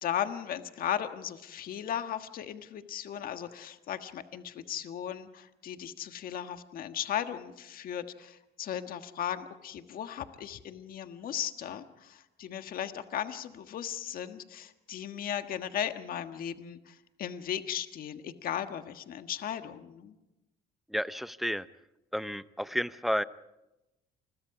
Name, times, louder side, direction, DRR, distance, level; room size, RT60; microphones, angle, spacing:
voice 1, 0.0-20.1, left 9 dB, 60° left, 8 dB, 1.5 m, -36 dB
voice 2, 20.9-21.7 22.1-23.2, equal, ahead, 14 dB, 0.7 m, -31 dB
29.5 x 22.0 x 4.9 m, 0.96 s
cardioid pair, 110°, 17 cm